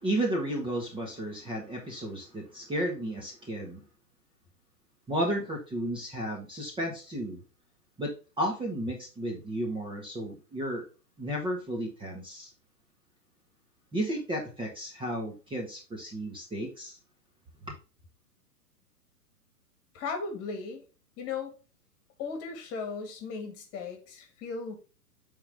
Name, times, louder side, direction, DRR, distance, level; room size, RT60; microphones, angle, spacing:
voice 1, 0.0-3.8 5.1-7.4 8.0-10.8 11.2-12.5 13.9-17.0 17.7-17.8, right 1 dB, 10° right, 1.4 m, -33 dB
voice 2, 19.9-20.8 21.2-21.5 22.2-24.8, left 5 dB, 30° left, 2.1 m, -36 dB
8.7 x 3.8 x 3.6 m
hypercardioid pair, 120°, 48 cm